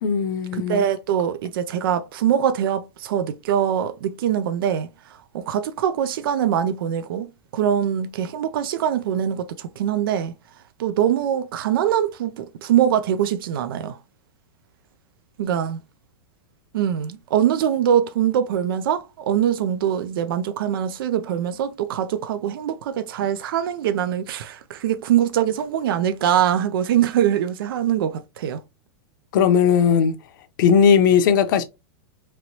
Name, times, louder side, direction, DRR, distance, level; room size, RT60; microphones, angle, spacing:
voice 1, 0.0-0.9 29.3-30.1 30.6-31.6, left 7 dB, 60° left, 0.6 m, -17 dB
voice 2, 0.5-10.3 10.8-14.0 15.4-15.8 16.7-28.6, right 9 dB, 75° right, 0.4 m, -23 dB
3.0 x 3.0 x 2.7 m
supercardioid pair, 150°, 12 cm